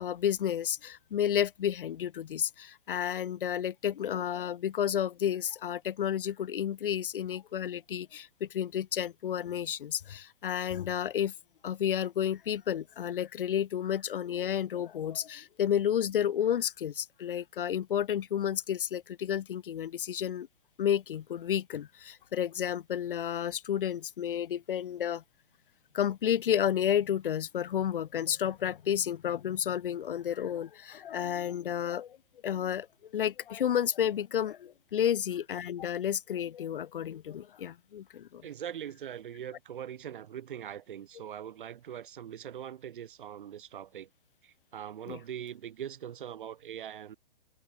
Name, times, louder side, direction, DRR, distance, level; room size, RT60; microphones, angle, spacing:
voice 1, 0.0-11.3 11.6-20.5 20.8-25.2 25.9-32.2 32.4-32.9 33.1-38.5 45.1-45.2, left 9 dB, 65° left, 0.6 m, -31 dB
voice 2, 38.4-44.1 44.4-47.2, right 9 dB, 60° right, 0.9 m, -42 dB
figure-of-eight pair, 120°, 29 cm